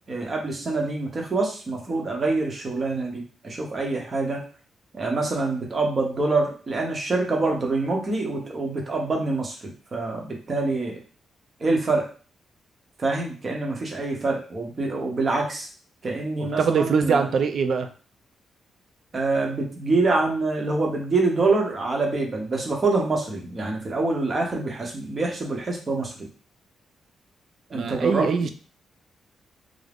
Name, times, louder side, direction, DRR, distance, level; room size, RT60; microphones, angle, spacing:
voice 1, 0.1-4.4 4.9-11.0 11.6-12.1 13.0-15.7 16.0-17.3 19.1-26.3 27.7-28.5, right 3 dB, 35° right, 0 dB, 0.8 m, -25 dB
voice 2, 16.4-17.9 27.7-28.5, right 6 dB, 60° right, 7 dB, 0.3 m, -23 dB
2.4 x 2.0 x 3.4 m, 0.39 s
cardioid pair, 110°, 0 cm